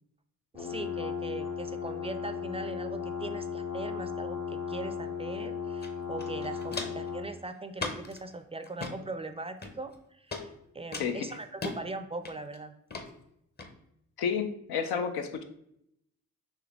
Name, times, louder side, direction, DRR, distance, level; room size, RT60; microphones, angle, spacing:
voice 1, 0.5-12.7, right 2 dB, 15° right, 9 dB, 0.4 m, -40 dB
sound 1, 0.6-7.3, left 6 dB, 55° left, 1.1 m, -36 dB
Walk footsteps, 5.8-5.9 6.2-7.1 7.8-8.2 8.6-8.9 9.6-10.0 10.3-10.4 10.9-11.8 12.3-12.6 12.9-13.1 13.6-13.7, left 3 dB, 25° left, 0.7 m, -37 dB
voice 2, 14.2-15.4, left 6 dB, 85° left, 8 dB, 0.5 m, -31 dB
3.8 x 3.0 x 3.4 m, 0.76 s
supercardioid pair, 45°, 36 cm